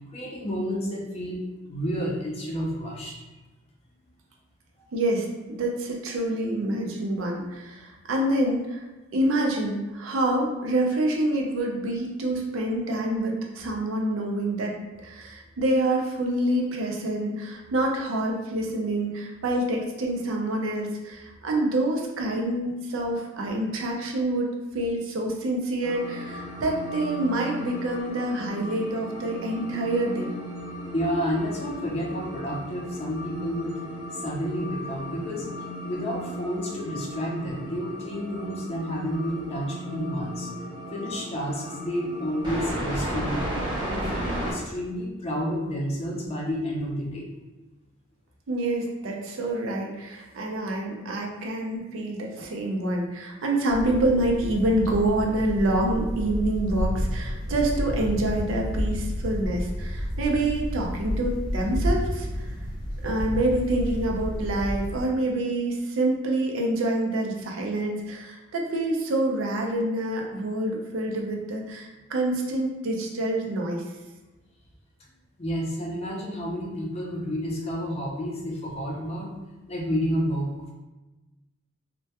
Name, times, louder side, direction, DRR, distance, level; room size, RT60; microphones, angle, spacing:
voice 1, 0.1-3.2 30.9-33.8 34.1-35.5 35.8-40.5 40.9-43.4 43.8-47.3 75.4-79.3 79.7-80.7, equal, 30° left, -3 dB, 0.4 m, -30 dB
voice 2, 4.9-8.8 9.1-24.5 24.7-30.3 48.5-62.5 63.0-73.8, right 1 dB, 70° right, 0 dB, 0.4 m, -27 dB
sound 1, 25.8-44.5, equal, 20° right, 0.7 m, -35 dB
sound 2, 53.7-65.0, equal, 80° left, 0.6 m, -30 dB
2.1 x 2.1 x 2.7 m, 1.1 s
head